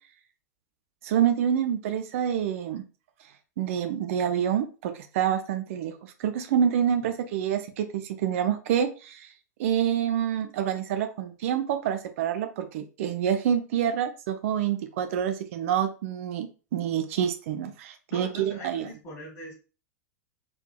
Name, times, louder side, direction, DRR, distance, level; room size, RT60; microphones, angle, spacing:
voice 1, 1.0-2.8 3.6-9.3 9.6-18.9, right 9 dB, 55° right, 7 dB, 0.5 m, -27 dB
voice 2, 18.1-19.5, equal, 30° left, -1 dB, 1.9 m, -41 dB
4.6 x 3.4 x 2.3 m, 0.35 s
figure-of-eight pair, 95°, 9 cm